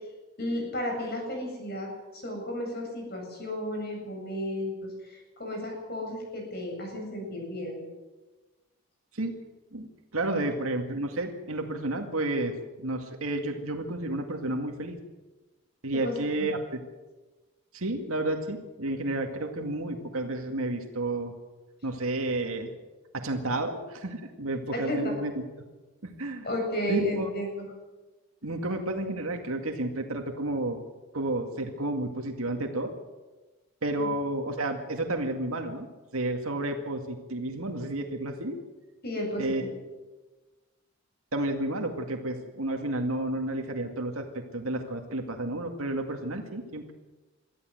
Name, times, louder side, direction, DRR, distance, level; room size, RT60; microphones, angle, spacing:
voice 1, 0.4-7.8 10.3-10.4 16.0-16.1 16.4-16.5 24.9-25.2 26.4-27.7 34.0-34.1 39.0-39.7, equal, 45° left, 1 dB, 7.7 m, -33 dB
voice 2, 9.7-15.0 15.8-16.8 17.7-21.3 21.8-22.7 23.1-25.3 26.0-26.5 26.9-27.3 28.4-30.8 31.1-32.9 33.8-35.9 36.1-38.6 39.4-39.6 41.3-44.3 44.5-46.9, right 2 dB, 75° right, 4 dB, 2.1 m, -31 dB
23.5 x 14.0 x 7.8 m, 1.2 s
head